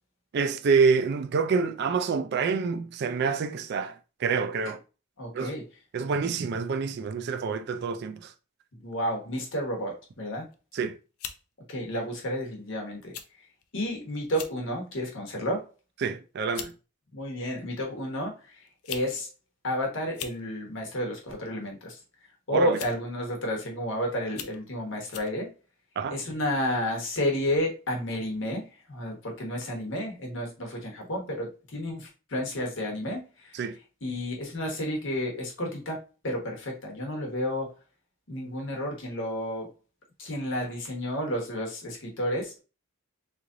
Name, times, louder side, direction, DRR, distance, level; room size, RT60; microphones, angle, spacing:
voice 1, 0.3-4.8 5.3-5.5 5.9-8.3 10.7-11.0 16.0-16.7 22.5-22.8 26.0-26.2 33.5-33.8, right 5 dB, 50° right, 0.3 m, -27 dB
voice 2, 5.2-5.6 8.8-10.5 11.7-13.1 13.7-15.6 17.1-18.6 18.9-19.3 19.6-22.0 22.5-25.5 26.1-28.6 28.9-33.6 34.0-36.0 36.2-37.7 38.3-39.7 40.2-42.5, equal, 55° left, 1.1 m, -31 dB
sound 1, 10.5-10.8 11.2-11.4 12.3-12.4 13.1-13.3 13.6-13.7 14.2-14.6 15.1-15.4 16.1-16.2 16.5-16.7 17.8-17.9 18.7-19.1 19.4-19.5 20.0-20.4 21.6-21.9 22.7-23.1 23.6-23.7 24.3-24.6 25.1-25.3, left 9 dB, 75° left, 0.5 m, -40 dB
3.1 x 2.5 x 3.7 m
head